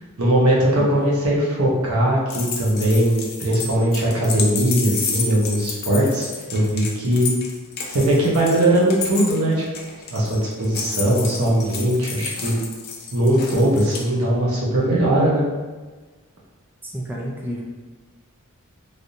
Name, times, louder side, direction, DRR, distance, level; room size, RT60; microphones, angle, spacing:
voice 1, 0.2-7.4 7.9-9.6 10.1-12.6 13.1-15.5, right 1 dB, 85° right, -4 dB, 0.9 m, -20 dB
sound 1, 2.3-14.0, left 5 dB, 45° left, 0.5 m, -31 dB
voice 2, 16.8-17.6, equal, 10° right, -3 dB, 0.4 m, -30 dB
3.3 x 2.6 x 2.6 m, 1.3 s
head